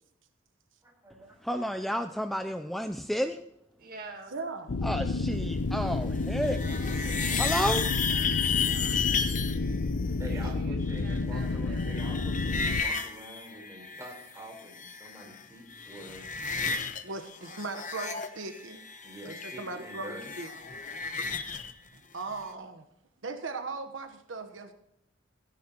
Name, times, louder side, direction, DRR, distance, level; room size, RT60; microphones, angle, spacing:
voice 1, 0.8-1.8 2.1-2.3 2.6-2.7 10.0-16.3 19.0-20.3, right 1 dB, 15° right, 3.9 m, -47 dB
voice 2, 1.4-3.4 4.8-6.6 7.4-7.8, equal, ahead, 0.4 m, -31 dB
voice 3, 3.8-4.4 6.6-9.8 10.3-11.9 22.4-22.7, right 3 dB, 50° right, 1.8 m, -48 dB
voice 4, 4.3-4.7 9.2-9.6 17.0-18.8 19.2-20.5 22.1-22.8 23.2-24.7, right 3 dB, 75° right, 1.1 m, -38 dB
sound 1, 4.7-12.8, left 3 dB, 70° left, 0.6 m, -30 dB
sound 2, 6.2-9.6 10.9-14.3 14.6-15.4 15.7-17.0 17.3-21.7, left 6 dB, 40° left, 0.9 m, -33 dB
17.0 x 10.5 x 3.0 m
head